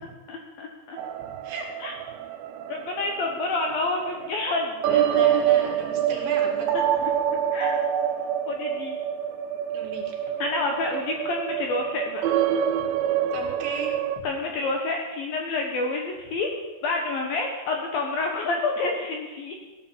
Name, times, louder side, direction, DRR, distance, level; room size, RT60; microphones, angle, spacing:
voice 1, 0.3-1.0 1.8-1.9 2.7-5.2 7.5-7.8 8.5-9.0 10.4-12.2 14.2-16.5 16.8-19.6, left 3 dB, 65° left, 2 dB, 2.4 m, -28 dB
sound 1, 1.0-14.2, right 9 dB, 80° right, 2.9 m, -26 dB
voice 2, 5.1-6.7 9.7-10.2 13.3-14.0, right 4 dB, 60° right, 0 dB, 4.0 m, -36 dB
16.0 x 10.0 x 7.3 m, 1.2 s
omnidirectional pair, 5.5 m